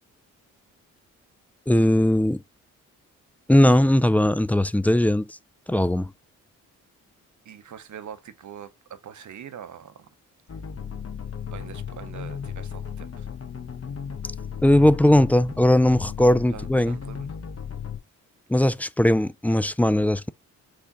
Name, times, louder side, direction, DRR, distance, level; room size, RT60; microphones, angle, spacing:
voice 1, 1.7-2.4 3.5-5.4 5.7-6.1 14.6-17.0 18.5-20.3, left 1 dB, 5° left, 0.3 m, -19 dB
voice 2, 7.4-10.1 11.5-13.3 16.5-17.3, right 8 dB, 50° right, 0.8 m, -43 dB
sound 1, 10.5-18.0, left 7 dB, 40° left, 1.2 m, -35 dB
4.8 x 2.5 x 4.0 m
hypercardioid pair, 40°, 38 cm